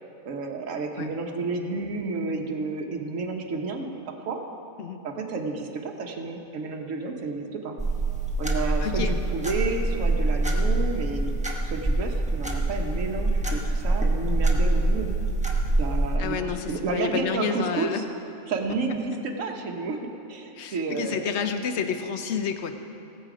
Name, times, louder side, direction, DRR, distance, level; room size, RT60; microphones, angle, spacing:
voice 1, 0.2-4.4 5.0-7.8 8.4-11.3 11.6-15.1 15.8-18.0 18.5-21.3, right 3 dB, 65° right, 2 dB, 1.4 m, -31 dB
sound 1, 7.8-16.2, right 2 dB, 5° right, 0.9 m, -25 dB
voice 2, 8.8-9.1 16.2-18.0 20.6-22.7, left 7 dB, 60° left, 7 dB, 1.0 m, -29 dB
18.5 x 7.5 x 5.0 m, 2.7 s
omnidirectional pair, 1.5 m